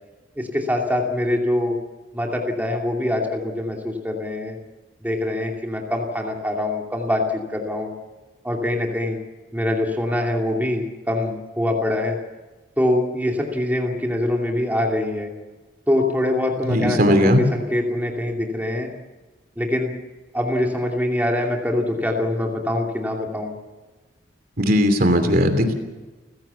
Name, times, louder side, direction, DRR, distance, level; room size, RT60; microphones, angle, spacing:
voice 1, 0.4-1.8 2.1-4.6 5.0-7.9 8.4-9.2 9.5-12.2 12.8-15.3 15.9-18.9 19.6-19.9 20.3-23.5, left 1 dB, 10° right, 0 dB, 2.7 m, -24 dB
voice 2, 16.7-17.4 24.6-25.7, equal, 50° right, 7 dB, 2.9 m, -17 dB
30.0 x 16.0 x 7.1 m, 1.2 s
head